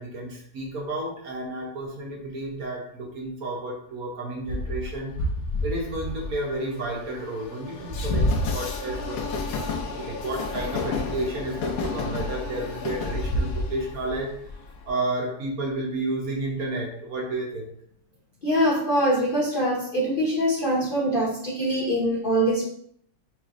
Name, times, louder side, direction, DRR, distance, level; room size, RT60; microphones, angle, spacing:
voice 1, 0.0-5.3 5.6-14.4 14.9-17.7, right 2 dB, 60° right, 0 dB, 1.2 m, -31 dB
Train, 4.5-14.9, left 2 dB, 90° left, 1.4 m, -29 dB
voice 2, 18.4-22.6, equal, 40° left, -6 dB, 0.8 m, -23 dB
5.9 x 3.2 x 2.5 m, 0.65 s
omnidirectional pair, 1.9 m